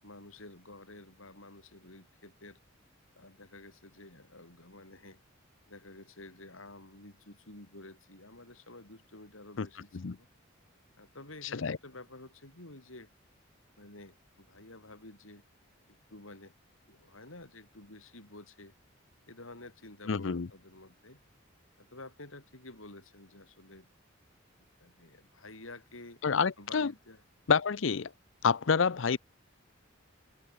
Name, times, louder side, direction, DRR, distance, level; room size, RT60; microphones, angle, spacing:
voice 1, 0.0-2.6 3.1-5.2 5.7-10.3 11.0-13.1 13.8-15.4 15.9-16.5 16.9-18.7 19.3-21.2 21.8-23.9 24.8-26.2 26.6-27.2, left 2 dB, 80° left, 6.7 m, -51 dB
voice 2, 20.1-20.5 26.2-26.9 27.5-28.1 28.4-29.2, left 5 dB, 65° left, 0.6 m, -28 dB
head